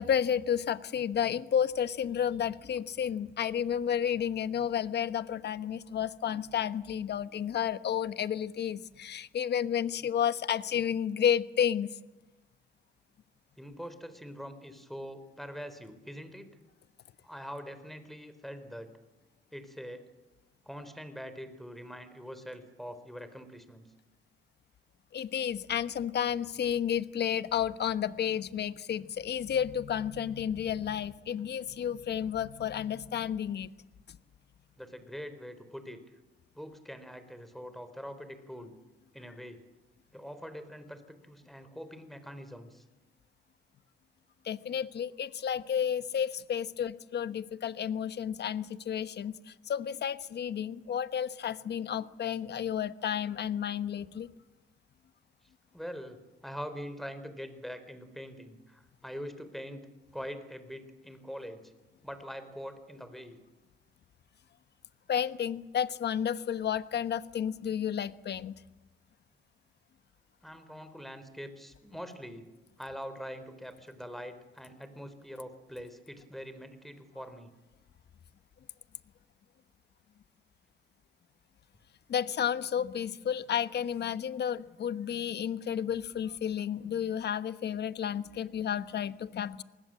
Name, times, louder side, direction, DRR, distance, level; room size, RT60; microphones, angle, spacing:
voice 1, 0.0-11.9 25.1-33.7 34.1-34.2 44.4-54.3 65.1-68.6 82.1-89.6, left 9 dB, 55° left, 13 dB, 1.2 m, -31 dB
voice 2, 13.6-16.5 17.2-18.9 19.5-20.0 20.7-23.9 34.8-36.0 36.5-38.8 39.1-39.6 40.1-42.8 55.7-59.9 60.1-61.7 62.0-63.4 70.4-72.5 72.8-77.5, equal, ahead, 10 dB, 3.8 m, -43 dB
28.0 x 20.0 x 7.6 m, 1.1 s
cardioid pair, 90°, 20 cm